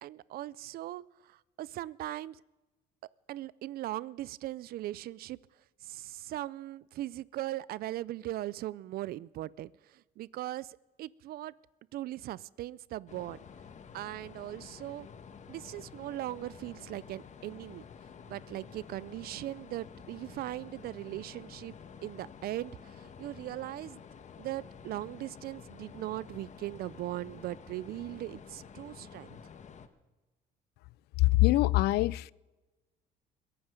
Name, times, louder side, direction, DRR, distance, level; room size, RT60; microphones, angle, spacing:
voice 1, 0.0-2.4 3.3-5.4 5.8-11.5 11.9-13.4 13.9-15.1 15.5-17.8 18.3-21.7 22.0-24.0 24.4-29.4, right 15 dB, 65° right, 0.4 m, -39 dB
sound 1, 13.1-29.9, left 6 dB, 45° left, 1.3 m, -50 dB
voice 2, 31.2-32.3, left 18 dB, 75° left, 0.4 m, -24 dB
22.0 x 11.5 x 5.2 m
cardioid pair, 110°, 17 cm